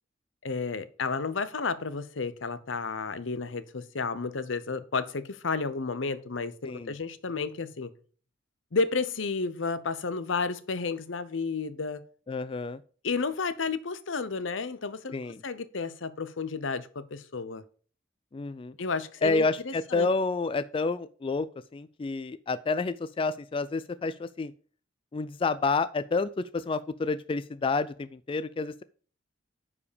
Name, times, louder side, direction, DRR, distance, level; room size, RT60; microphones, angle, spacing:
voice 1, 0.4-7.9 8.7-12.0 13.0-17.6 18.8-20.1, left 4 dB, 80° left, 0.8 m, -32 dB
voice 2, 12.3-12.8 15.1-15.4 18.3-18.7 19.2-21.5 21.7-24.5 25.1-28.8, left 3 dB, 30° left, 0.3 m, -29 dB
9.7 x 4.9 x 5.1 m
head